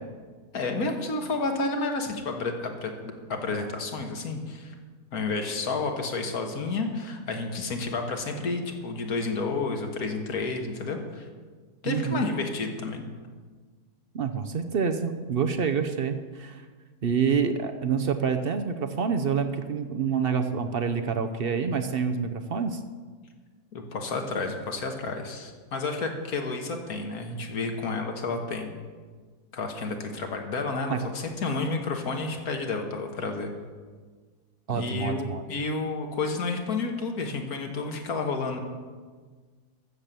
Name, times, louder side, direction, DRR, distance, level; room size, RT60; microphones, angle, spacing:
voice 1, 0.5-4.7 5.1-11.3 11.8-13.0 23.7-28.7 29.5-33.5 34.7-38.6, left 3 dB, 65° left, 4 dB, 1.9 m, -30 dB
voice 2, 11.8-12.3 14.1-16.7 17.0-22.8 30.9-31.0 34.7-35.4, right 6 dB, 55° right, 8 dB, 0.7 m, -27 dB
13.5 x 7.5 x 6.8 m, 1.5 s
omnidirectional pair, 1.7 m